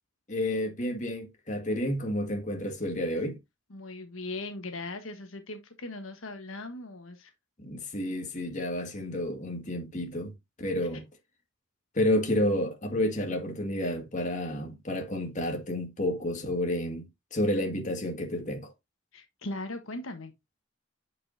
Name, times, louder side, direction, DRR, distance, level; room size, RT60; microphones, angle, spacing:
voice 1, 0.3-3.4 7.6-10.3 10.6-11.1 11.9-18.7, left 1 dB, 35° left, 1.9 m, -30 dB
voice 2, 3.7-7.3 19.1-20.3, left 2 dB, 85° left, 1.3 m, -39 dB
8.3 x 5.4 x 2.7 m
head